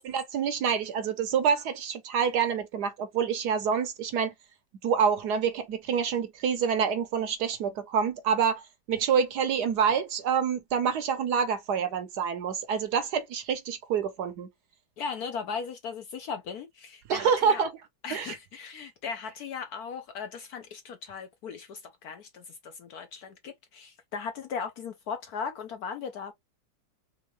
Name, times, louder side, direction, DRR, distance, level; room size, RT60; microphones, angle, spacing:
voice 1, 0.0-4.3 4.8-14.5 17.1-17.7 18.1-18.4, right 7 dB, 65° right, 1.1 m, -27 dB
voice 2, 15.0-17.6 18.0-26.3, left 6 dB, 65° left, 1.0 m, -37 dB
3.6 x 3.6 x 3.2 m
omnidirectional pair, 2.1 m